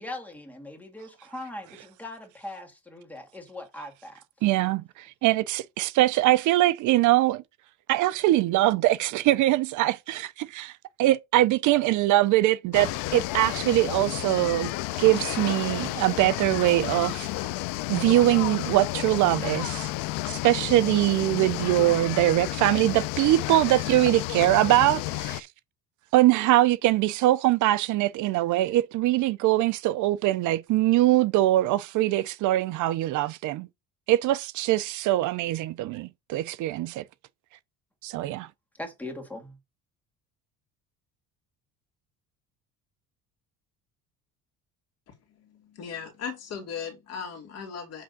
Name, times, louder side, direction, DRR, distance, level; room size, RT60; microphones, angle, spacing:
voice 1, 0.0-4.2 38.8-39.6, left 1 dB, 5° left, 2.0 m, -40 dB
voice 2, 4.4-7.4 7.9-10.7 11.0-14.7 15.0-17.5 17.9-19.9 20.3-25.5 26.1-33.7 34.1-37.0 38.0-38.5, right 15 dB, 60° right, 0.6 m, -23 dB
sound 1, 12.7-25.4, left 18 dB, 85° left, 0.6 m, -31 dB
voice 3, 45.4-48.0, left 6 dB, 50° left, 2.5 m, -37 dB
7.7 x 3.5 x 6.5 m
cardioid pair, 170°, 33 cm